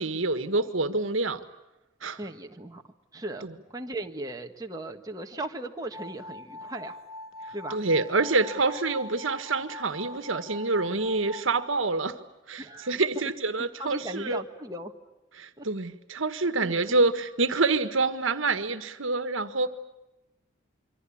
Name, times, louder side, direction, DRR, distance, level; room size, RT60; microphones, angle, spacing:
voice 1, 0.0-1.4 2.0-2.2 3.4-3.5 7.7-12.2 12.5-14.4 15.4-19.7, right 3 dB, 80° right, 10 dB, 1.7 m, -27 dB
voice 2, 2.2-2.8 3.1-7.0 7.5-7.8 8.6-8.7 12.6-13.3 13.6-14.9 15.6-15.7 16.6-16.7, right 1 dB, 20° right, 3 dB, 1.6 m, -38 dB
sound 1, 5.9-11.7, left 1 dB, ahead, 2.1 m, -43 dB
26.5 x 24.5 x 8.7 m, 0.98 s
head